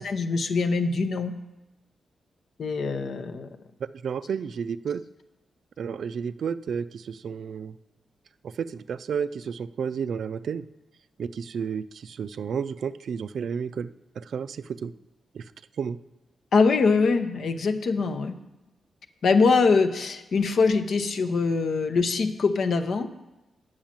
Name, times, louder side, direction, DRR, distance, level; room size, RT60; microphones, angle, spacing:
voice 1, 0.0-1.3 2.6-3.5 16.5-18.3 19.2-23.1, left 4 dB, 60° left, 8 dB, 0.7 m, -23 dB
voice 2, 4.0-5.0 5.8-7.7 8.6-10.7 11.2-13.9 14.2-14.9 15.3-15.4 15.8-16.0, right 6 dB, 65° right, 14 dB, 0.3 m, -31 dB
8.7 x 6.3 x 7.3 m, 1.0 s
wide cardioid pair, 145°, 0 cm